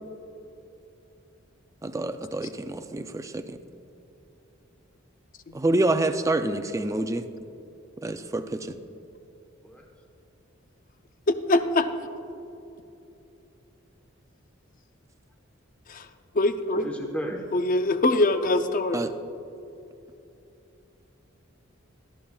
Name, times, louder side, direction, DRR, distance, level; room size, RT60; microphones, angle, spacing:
voice 1, 1.8-3.6 5.5-7.2 8.0-8.8 18.9-19.1, right 2 dB, 15° right, 9 dB, 0.4 m, -27 dB
voice 2, 11.3-11.9 15.9-16.1 16.3-16.9 17.5-19.1, left 2 dB, 40° left, 9 dB, 0.6 m, -23 dB
voice 3, 16.7-17.4, equal, 5° left, 1 dB, 1.1 m, -33 dB
19.0 x 12.5 x 2.3 m, 2.8 s
head